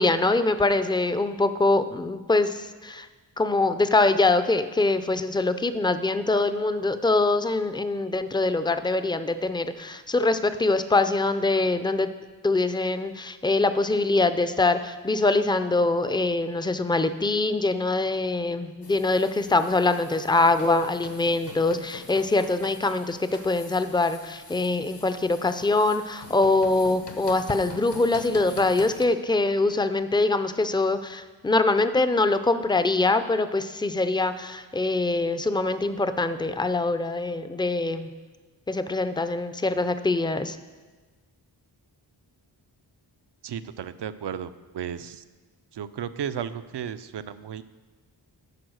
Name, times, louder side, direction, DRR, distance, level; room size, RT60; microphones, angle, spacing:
voice 1, 0.0-3.1 3.4-12.1 12.4-38.1 38.7-40.6, left 2 dB, 10° left, 11 dB, 0.4 m, -23 dB
sound 1, 18.8-29.1, left 4 dB, 65° left, 1.1 m, -44 dB
voice 2, 43.4-45.2 45.7-47.6, right 8 dB, 65° right, 13 dB, 0.6 m, -34 dB
11.0 x 4.7 x 6.4 m, 1.3 s
cardioid pair, 65°, 45 cm